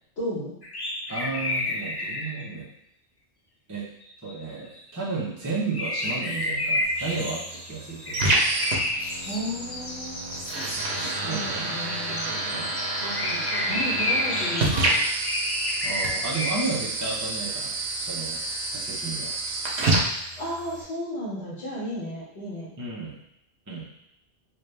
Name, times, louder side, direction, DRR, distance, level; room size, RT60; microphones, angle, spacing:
voice 1, 0.2-0.5 9.3-10.4 11.2-12.3 13.6-15.0 20.4-22.7, equal, 70° left, -12 dB, 1.8 m, -34 dB
sound 1, 0.6-2.4 4.0-4.5 4.8-5.0 5.7-16.9 18.0-18.1, left 1 dB, 30° left, 0.5 m, -30 dB
voice 2, 1.1-2.7 3.7-3.9 4.2-8.2 10.9-11.8 12.5-12.8 15.8-18.4 18.7-19.3 22.8-23.2 23.7-23.9, right 3 dB, 20° right, -7 dB, 0.7 m, -33 dB
sound 2, 6.8-20.8, right 2 dB, 75° right, 1.1 m, -29 dB
4.2 x 2.5 x 3.3 m, 0.76 s
omnidirectional pair, 1.1 m